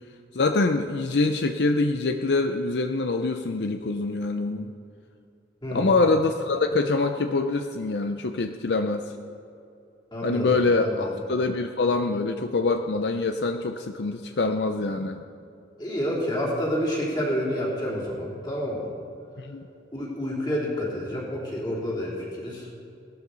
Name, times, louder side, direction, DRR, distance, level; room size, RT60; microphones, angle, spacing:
voice 1, 0.3-4.7 5.7-9.1 10.2-15.2 19.4-19.7, left 3 dB, 70° left, 6 dB, 0.5 m, -25 dB
voice 2, 5.6-6.0 10.1-11.2 15.8-18.9 19.9-22.7, equal, 25° left, -5 dB, 3.5 m, -29 dB
17.5 x 12.5 x 4.0 m, 2.6 s
head